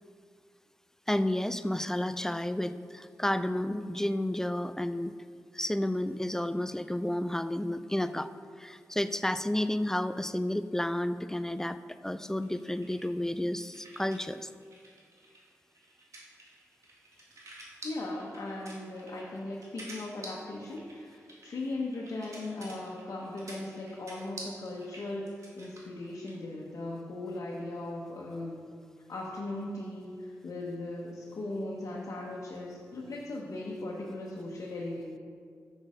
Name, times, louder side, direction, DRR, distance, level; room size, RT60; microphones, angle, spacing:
voice 1, 1.1-5.1 5.5-8.3 8.6-11.8 12.0-14.5, left 1 dB, 10° left, 12 dB, 0.3 m, -31 dB
sound 1, 12.4-14.3 14.6-26.4, right 1 dB, 65° right, 1.7 m, -49 dB
voice 2, 17.8-25.2 25.5-28.7 29.1-35.2, left 2 dB, 65° left, -4 dB, 1.1 m, -38 dB
6.4 x 6.1 x 5.0 m, 2.2 s
cardioid pair, 60°, 6 cm